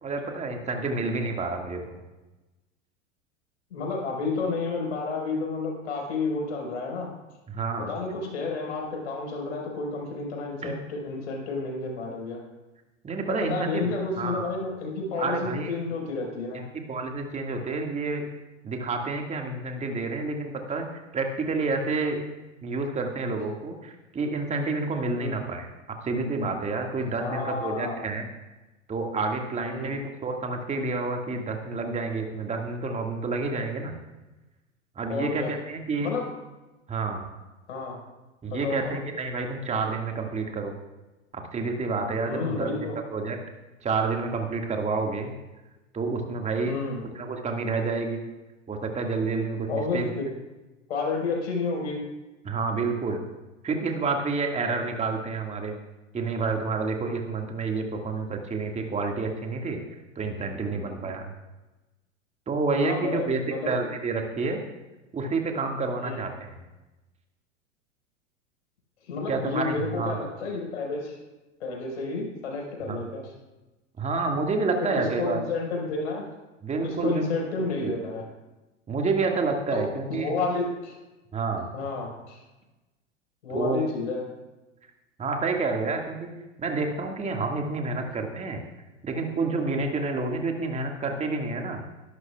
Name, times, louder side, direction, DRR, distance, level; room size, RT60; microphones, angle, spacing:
voice 1, 0.0-2.0 7.5-7.9 10.6-10.7 13.0-13.9 14.2-14.5 15.2-15.7 16.5-16.6 16.9-18.2 18.6-20.9 21.1-22.2 22.6-25.7 26.0-28.3 28.9-34.0 35.0-36.1 36.9-37.2 38.4-40.7 41.3-42.8 43.1-43.4 43.8-45.3 45.9-46.7 47.1-48.3 48.7-50.1 52.4-53.2 53.6-55.8 56.1-59.8 60.2-61.3 62.5-64.6 65.1-66.6 69.3-70.2 72.9-73.0 74.0-75.4 76.6-77.2 77.6-77.9 78.9-80.3 81.3-81.7 83.5-83.8 85.2-86.3 86.6-88.6 89.0-91.8, right 3 dB, 20° right, 3 dB, 1.9 m, -29 dB
voice 2, 3.7-7.1 7.9-12.4 13.3-16.6 25.2-25.4 27.2-28.1 29.6-30.0 35.1-35.5 36.0-36.3 37.7-38.0 38.5-39.0 42.3-43.0 46.7-47.0 49.7-50.3 50.9-52.0 60.3-61.2 62.8-63.7 66.0-66.2 69.1-71.2 71.6-73.3 75.0-76.2 76.8-78.2 79.7-80.9 81.7-82.4 83.4-84.2, left 3 dB, 65° left, -1 dB, 4.8 m, -31 dB
21.0 x 12.0 x 2.4 m, 1.1 s
figure-of-eight pair, 90°, 38 cm